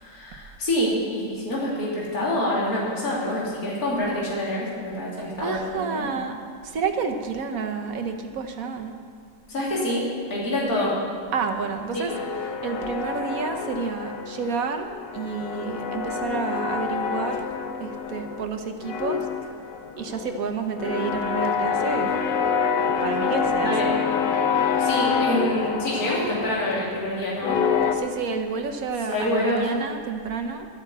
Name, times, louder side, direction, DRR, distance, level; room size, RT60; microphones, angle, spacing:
voice 1, 0.0-6.1 9.5-10.0 10.3-10.9 11.9-12.0 23.6-23.9 24.8-27.6 29.1-29.7, left 1 dB, 55° left, -6 dB, 3.1 m, -26 dB
voice 2, 5.1-6.4 6.6-9.0 10.8-10.9 11.3-12.1 12.5-17.4 17.8-19.2 20.0-22.2 23.0-23.7 27.9-30.7, right 5 dB, 55° right, 5 dB, 1.4 m, -30 dB
sound 1, 12.1-14.6 14.9-18.5 18.8-27.9, left 6 dB, 80° left, 1.5 m, -27 dB
12.0 x 8.8 x 8.1 m, 2.2 s
omnidirectional pair, 1.9 m